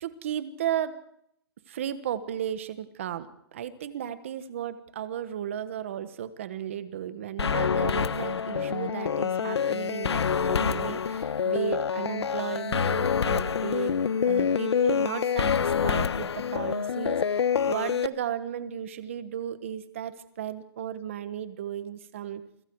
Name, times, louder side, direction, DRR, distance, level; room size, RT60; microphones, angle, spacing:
voice 1, 0.0-1.0 1.7-14.0 14.2-22.4, right 10 dB, 30° right, 13 dB, 1.3 m, -34 dB
sound 1, 7.4-18.1, left 7 dB, 90° left, 1.1 m, -26 dB
28.5 x 25.0 x 4.7 m, 0.73 s
hypercardioid pair, 180°, 13 cm